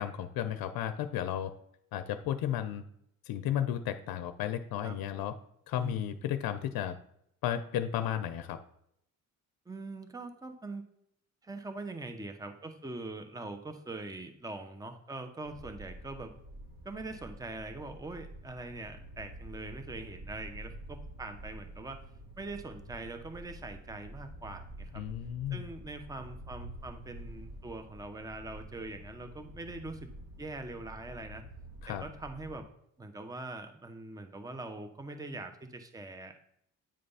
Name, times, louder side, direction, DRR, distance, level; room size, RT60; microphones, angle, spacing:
voice 1, 0.0-1.5 1.9-2.8 3.3-5.3 5.7-7.0 7.4-8.6 24.9-25.6 31.8-32.0, left 10 dB, 85° left, 10 dB, 0.6 m, -33 dB
voice 2, 5.7-6.1 9.7-10.8 11.4-16.3 16.8-22.0 22.4-25.0 25.5-30.1 30.4-31.4 31.9-32.7 33.0-36.4, right 2 dB, 10° right, 7 dB, 0.8 m, -42 dB
sound 1, 15.4-32.6, right 1 dB, 75° right, 1.6 m, -48 dB
8.9 x 3.3 x 5.5 m, 0.74 s
cardioid pair, 95°, 35 cm